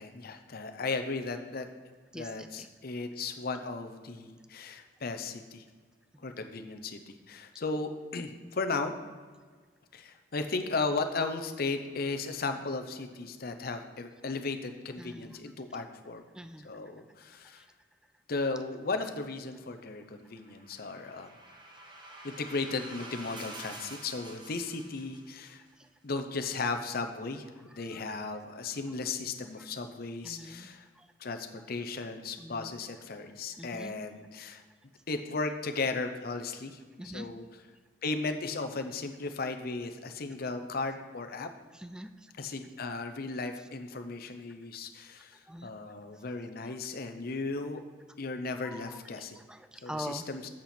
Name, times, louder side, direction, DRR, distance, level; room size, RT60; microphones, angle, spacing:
voice 1, 0.0-1.7 2.1-5.6 6.2-8.9 9.9-16.2 16.6-17.7 18.3-21.3 22.2-25.6 26.0-30.9 31.2-34.6 35.1-37.4 38.0-41.5 42.3-47.8 48.2-49.4 49.8-50.5, left 3 dB, 55° left, 7 dB, 0.7 m, -36 dB
voice 2, 2.1-2.7 15.0-15.4 16.3-16.7 17.6-17.7 22.1-22.3 30.2-30.7 31.0-31.1 32.4-32.7 33.6-33.9 37.0-37.3 41.8-42.1 45.5-45.7 48.6-48.8 49.4-50.2, equal, 5° right, 10 dB, 0.3 m, -43 dB
sound 1, 20.2-25.5, right 1 dB, 25° right, 1.1 m, -48 dB
8.6 x 7.5 x 4.3 m, 1.5 s
head